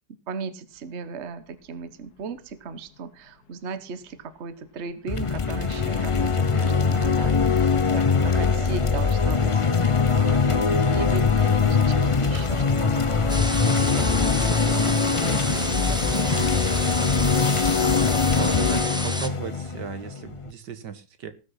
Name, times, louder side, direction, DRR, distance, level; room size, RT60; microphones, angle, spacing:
voice 1, 0.3-18.1, right 5 dB, 45° right, 12 dB, 1.3 m, -37 dB
sound 1, 0.7-19.7, left 6 dB, 60° left, 2.0 m, -42 dB
sound 2, 5.1-20.5, left 5 dB, 30° left, 0.5 m, -22 dB
sound 3, 13.3-19.3, equal, 5° right, 1.1 m, -31 dB
voice 2, 16.1-16.5 17.8-18.0 18.3-21.3, right 7 dB, 75° right, 10 dB, 1.9 m, -36 dB
18.5 x 6.6 x 5.7 m, 0.33 s
omnidirectional pair, 1.9 m